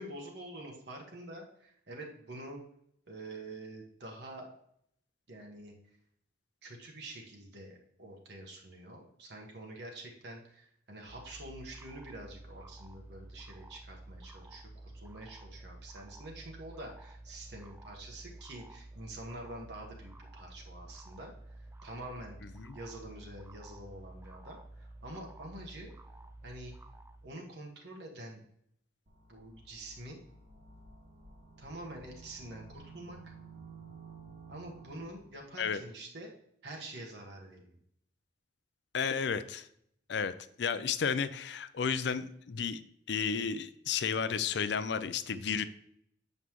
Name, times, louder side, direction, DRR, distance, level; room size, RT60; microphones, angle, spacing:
voice 1, 0.0-2.6 3.1-4.5 5.3-5.7 6.6-22.4 22.7-25.9 26.4-26.7 27.2-28.4 29.3-30.2 31.6-33.3 34.5-36.3 36.6-37.8, right 1 dB, 60° right, 0 dB, 1.3 m, -46 dB
sound 1, 11.1-27.3, right 2 dB, 10° right, 0.3 m, -51 dB
sound 2, 29.1-35.4, right 4 dB, 40° right, 1.1 m, -53 dB
voice 2, 38.9-39.7 40.1-40.3 40.6-42.8 43.1-45.6, left 6 dB, 65° left, 13 dB, 0.5 m, -32 dB
8.1 x 5.4 x 3.0 m, 0.70 s
head